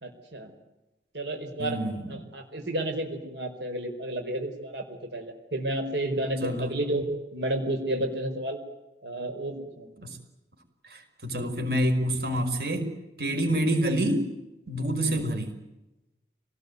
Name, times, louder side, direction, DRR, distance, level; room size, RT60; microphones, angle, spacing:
voice 1, 0.0-0.5 1.1-1.8 2.1-8.6 9.0-9.9 15.0-15.2, right 1 dB, 90° right, 5 dB, 4.6 m, -31 dB
voice 2, 1.6-2.1 6.4-6.7 10.0-10.2 10.8-12.9 13.2-14.3 14.7-15.5, equal, 60° right, 5 dB, 5.4 m, -27 dB
25.5 x 19.0 x 9.5 m, 0.96 s
head